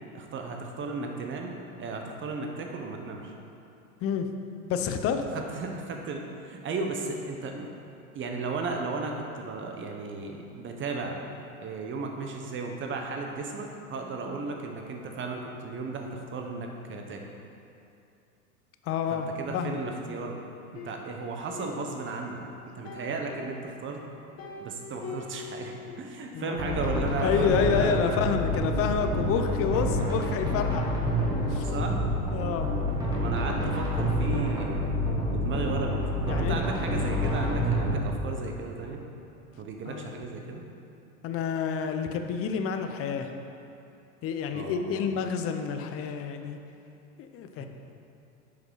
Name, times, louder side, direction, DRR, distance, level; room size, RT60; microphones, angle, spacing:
voice 1, 0.1-3.3 5.3-7.7 8.1-11.2 11.6-17.2 19.1-20.4 20.7-24.0 24.6-28.3 31.7-32.0 33.1-34.9 35.3-36.0 36.3-39.0 39.6-40.6 44.5-45.1 47.6-47.7, right 3 dB, 25° right, 2 dB, 1.0 m, -35 dB
voice 2, 4.7-5.2 18.8-19.3 19.5-19.8 26.3-30.9 31.5-31.7 32.3-32.7 36.3-36.6 39.9-40.1 41.2-43.3 44.2-46.6 47.2-47.7, left 6 dB, 30° left, 6 dB, 0.6 m, -29 dB
sound 1, 20.7-22.5 22.8-26.1 26.4-26.5 26.7-27.3 27.8-29.8 30.2-31.9, left 4 dB, 50° left, 1.6 m, -45 dB
sound 2, 26.6-38.0, equal, 10° right, 1.7 m, -28 dB
8.0 x 5.2 x 4.7 m, 2.7 s
hypercardioid pair, 100°, 44 cm